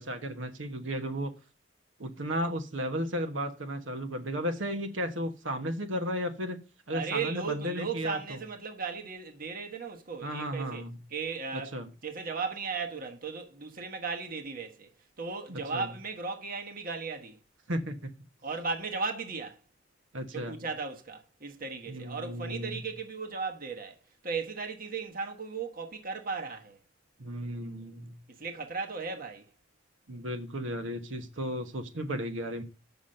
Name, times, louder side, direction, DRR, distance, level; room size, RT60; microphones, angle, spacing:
voice 1, 0.0-1.3 2.0-8.4 10.2-11.0 11.5-11.9 15.5-15.9 17.7-18.1 20.1-20.5 21.9-22.8 27.2-28.2 30.1-32.6, equal, 85° right, 1.3 m, -34 dB
voice 2, 6.9-10.8 11.1-11.7 12.0-14.9 15.2-17.4 18.4-19.6 20.3-24.0 24.2-26.8 28.3-29.5, right 5 dB, 50° right, 1.3 m, -36 dB
7.3 x 6.1 x 6.5 m
head